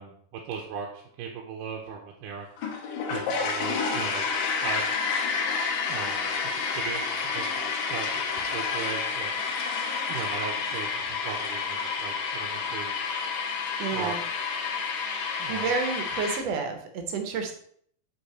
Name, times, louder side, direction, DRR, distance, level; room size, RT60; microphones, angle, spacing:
voice 1, 0.0-2.5 3.1-4.2 4.6-5.0 5.8-6.3 6.6-7.5 7.9-9.3 10.1-12.9 13.9-14.2 15.4-15.9, right 6 dB, 85° right, 0 dB, 2.5 m, -37 dB
sound 1, 2.6-16.4, left 5 dB, 85° left, 2.8 m, -29 dB
voice 2, 13.8-14.2 15.5-17.5, right 5 dB, 65° right, 5 dB, 1.8 m, -30 dB
8.5 x 4.1 x 4.2 m, 0.62 s
omnidirectional pair, 3.8 m